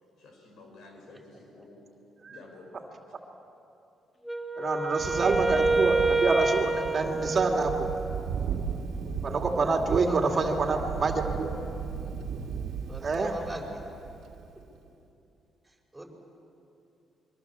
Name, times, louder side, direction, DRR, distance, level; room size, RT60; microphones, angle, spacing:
voice 1, 0.2-1.8 2.3-2.9, left 2 dB, 75° left, 2 dB, 6.2 m, -51 dB
voice 2, 1.1-1.7 6.9-7.3 9.8-10.6 12.9-13.8 15.6-16.0, right 1 dB, 10° right, -1 dB, 5.9 m, -42 dB
Wind instrument woodwind instrument, 4.2-8.1, right 3 dB, 20° left, 2.1 m, -27 dB
voice 3, 4.6-7.9 8.4-8.5 9.2-11.5 13.0-13.3, right 3 dB, 45° right, 3 dB, 2.6 m, -27 dB
Thunder, 5.0-14.6, right 6 dB, 75° right, 2.0 m, -36 dB
27.0 x 23.5 x 7.5 m, 2.8 s
cardioid pair, 90°, 0 cm